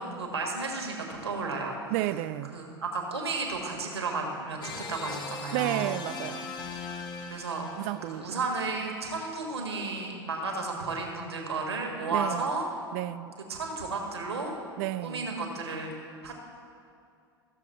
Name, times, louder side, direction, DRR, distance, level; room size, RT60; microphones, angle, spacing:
voice 1, 0.0-1.8 2.5-5.9 7.3-7.6 8.1-12.7 13.5-14.5 15.0-15.9 16.2-16.4, right 3 dB, 80° right, 1.7 m, -33 dB
voice 2, 1.9-2.6 5.5-6.5 7.8-8.4 12.1-12.5 12.9-13.4 14.8-15.3, right 16 dB, 50° right, 0.4 m, -32 dB
sound 1, 4.6-8.3, left 5 dB, 30° left, 1.0 m, -39 dB
14.5 x 6.8 x 4.3 m
figure-of-eight pair, 80°, 14 cm